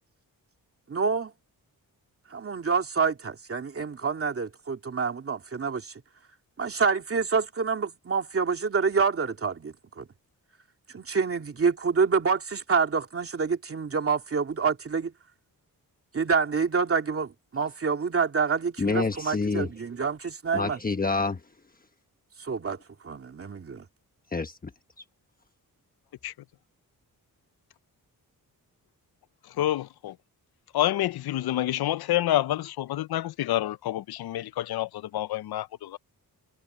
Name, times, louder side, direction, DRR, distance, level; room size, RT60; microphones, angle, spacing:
voice 1, 0.9-1.3 2.3-5.9 6.6-10.1 10.9-15.1 16.1-20.8 22.4-22.8 23.0-23.8, right 5 dB, 35° right, 2.5 m, -27 dB
voice 2, 18.8-19.7 20.5-21.4 24.3-24.7, left 4 dB, 25° left, 1.2 m, -27 dB
voice 3, 29.6-30.1 30.7-36.0, left 13 dB, 85° left, 0.5 m, -28 dB
wide cardioid pair, 175°, 37 cm